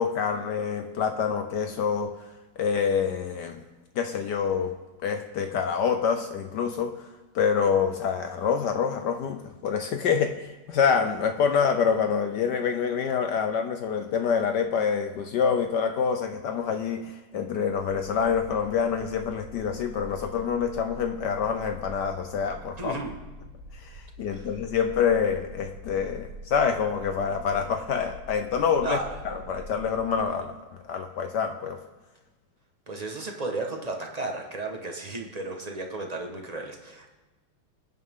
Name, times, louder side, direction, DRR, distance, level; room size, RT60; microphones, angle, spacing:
voice 1, 0.0-2.2 2.6-3.6 4.0-4.8 5.0-7.0 7.3-22.9 23.7-29.0 29.2-31.8, left 6 dB, 65° left, 7 dB, 1.1 m, -26 dB
sound 1, 17.7-30.2, left 1 dB, 80° right, 2.3 m, -44 dB
voice 2, 22.8-23.1 24.3-24.5 28.8-29.2 32.9-37.2, right 2 dB, 20° right, 2 dB, 1.3 m, -34 dB
25.5 x 9.4 x 3.8 m, 1.2 s
omnidirectional pair, 2.3 m